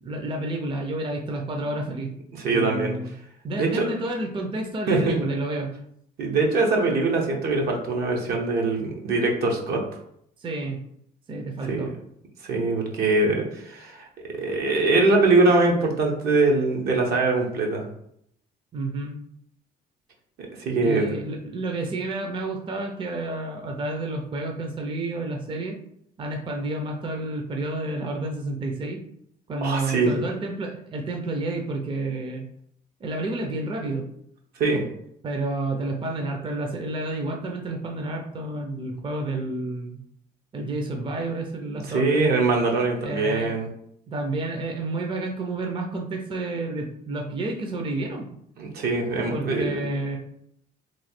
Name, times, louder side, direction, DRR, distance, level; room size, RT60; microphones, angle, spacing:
voice 1, 0.0-2.1 2.5-3.1 3.4-5.7 10.4-10.8 11.3-11.9 18.7-19.2 20.8-25.8 26.2-29.0 29.5-32.4 33.0-34.1 35.2-40.0 40.5-42.2 43.0-43.5 44.1-48.3 49.3-50.2, right 2 dB, 30° right, 1 dB, 0.5 m, -30 dB
voice 2, 2.4-2.9 3.5-3.9 4.9-5.2 6.2-9.8 11.7-11.9 12.4-14.1 14.3-17.9 20.5-21.1 29.6-30.1 34.6-34.8 41.6-43.7 48.6-49.8, right 3 dB, 70° right, 1 dB, 0.9 m, -22 dB
3.1 x 2.3 x 4.3 m, 0.72 s
cardioid pair, 110°, 17 cm